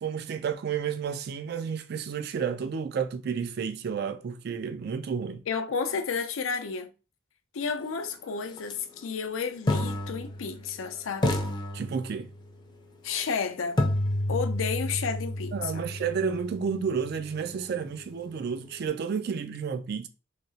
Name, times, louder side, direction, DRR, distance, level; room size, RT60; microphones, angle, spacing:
voice 1, 0.0-5.4 11.7-12.3 15.5-20.1, right 6 dB, 55° right, 0.3 m, -31 dB
voice 2, 5.5-6.9 7.5-11.4 13.0-13.8 14.3-15.8, left 5 dB, 80° left, 0.5 m, -31 dB
sound 1, 8.6-8.7 9.7-10.8 11.2-12.5 13.8-17.7, left 1 dB, 20° left, 0.5 m, -30 dB
3.2 x 2.8 x 2.7 m
head